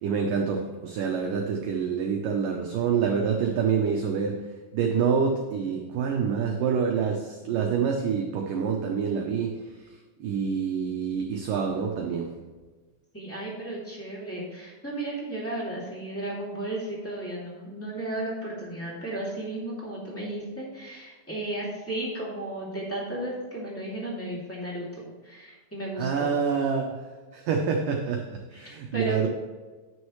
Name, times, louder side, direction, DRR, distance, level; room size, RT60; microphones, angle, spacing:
voice 1, 0.0-4.4 4.7-9.5 10.2-12.3 26.0-27.0 27.3-29.3, right 6 dB, 90° right, 1 dB, 1.9 m, -27 dB
voice 2, 13.1-26.3 28.5-29.3, right 1 dB, 5° left, -5 dB, 1.3 m, -34 dB
9.8 x 9.6 x 3.2 m, 1.3 s
omnidirectional pair, 5.1 m